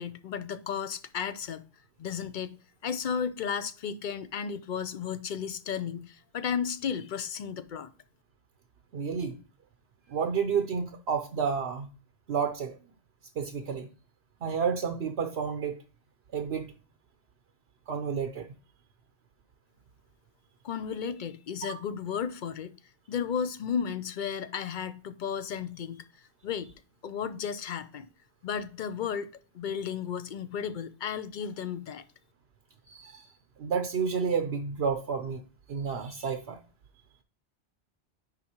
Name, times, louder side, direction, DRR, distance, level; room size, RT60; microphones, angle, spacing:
voice 1, 0.0-1.6 2.0-2.6 2.8-7.9 20.6-22.8 23.1-26.1 26.4-26.7 27.0-28.1 28.4-29.3 29.5-32.0, left 7 dB, 55° left, 0.6 m, -34 dB
voice 2, 8.9-9.4 10.1-11.9 12.3-12.8 13.4-13.9 14.4-15.8 16.3-16.7 17.9-18.5 21.6-21.8 32.9-33.3 33.6-35.4 35.7-36.6, right 6 dB, 65° right, 0.9 m, -30 dB
9.8 x 3.8 x 2.9 m
omnidirectional pair, 1.2 m